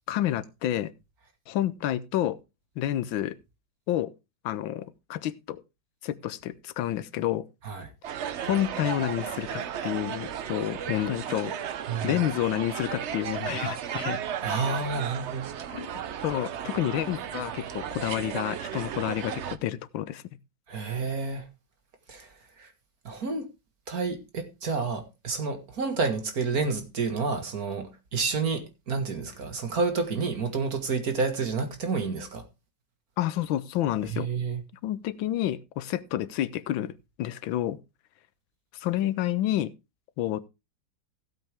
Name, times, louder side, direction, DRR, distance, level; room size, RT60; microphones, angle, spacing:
voice 1, 0.1-0.9 1.5-2.4 2.8-3.4 3.9-4.1 4.4-5.6 6.0-7.5 8.4-11.6 12.0-14.2 15.7-15.9 16.2-20.2 33.2-34.3 34.8-36.9 37.2-37.8 38.7-39.7 40.2-40.4, left 12 dB, 80° left, 1.5 m, -29 dB
sound 1, 8.0-19.6, right 9 dB, 85° right, 0.6 m, -34 dB
voice 2, 11.9-12.2 14.4-15.5 20.7-21.5 22.1-22.7 23.0-23.5 23.9-32.5 34.1-34.6, right 4 dB, 50° right, 2.1 m, -30 dB
15.5 x 8.0 x 3.5 m
omnidirectional pair, 2.1 m